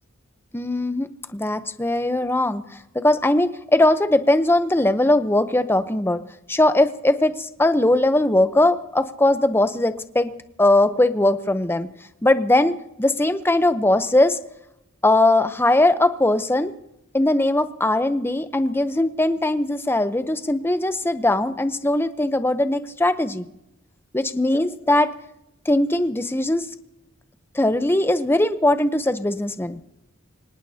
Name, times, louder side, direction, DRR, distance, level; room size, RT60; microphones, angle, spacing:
voice 1, 0.5-2.6 2.9-6.2 6.5-10.3 10.6-11.9 12.2-12.7 13.0-14.4 15.0-16.7 17.1-23.5 24.1-25.1 25.7-26.7 27.5-29.8, left 1 dB, 10° left, 10 dB, 0.8 m, -20 dB
25.5 x 19.0 x 2.8 m, 0.85 s
head